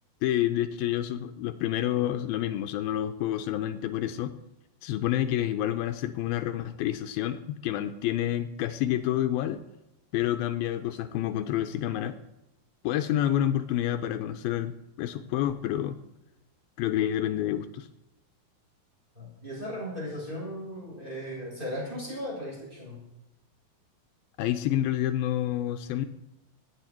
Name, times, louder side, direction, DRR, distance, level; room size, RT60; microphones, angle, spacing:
voice 1, 0.2-4.3 4.8-9.6 10.1-12.2 12.8-16.0 16.8-17.9 24.4-26.1, left 12 dB, 85° left, 8 dB, 2.4 m, -28 dB
voice 2, 19.1-23.0, equal, 10° right, -4 dB, 6.4 m, -37 dB
17.5 x 10.0 x 4.4 m, 0.91 s
omnidirectional pair, 4.3 m